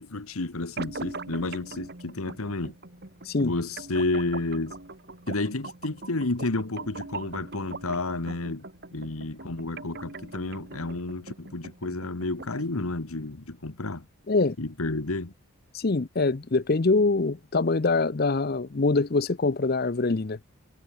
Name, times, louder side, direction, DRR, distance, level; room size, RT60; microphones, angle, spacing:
voice 1, 0.0-2.7 3.4-4.7 5.3-8.6 8.9-14.1 14.6-15.3, left 2 dB, 75° left, 1.5 m, -31 dB
sound 1, 0.8-12.8, right 3 dB, 45° right, 2.1 m, -42 dB
voice 2, 15.7-20.4, left 3 dB, 45° left, 0.6 m, -24 dB
head